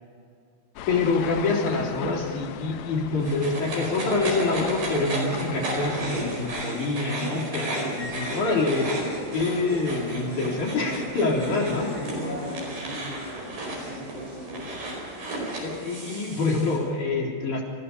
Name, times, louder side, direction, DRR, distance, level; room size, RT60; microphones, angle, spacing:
sound 1, 0.8-6.6, left 10 dB, 85° left, 1.5 m, -38 dB
voice 1, 0.9-8.9 9.3-11.9 15.6-17.6, left 3 dB, 55° left, -3 dB, 5.1 m, -26 dB
sound 2, 3.2-16.8, right 2 dB, 80° right, 6.5 m, -34 dB
sound 3, 8.0-15.8, left 2 dB, 20° left, 7.0 m, -40 dB
voice 2, 11.5-14.7, equal, 45° right, -6 dB, 4.8 m, -38 dB
28.0 x 15.0 x 6.8 m, 2.3 s
omnidirectional pair, 4.1 m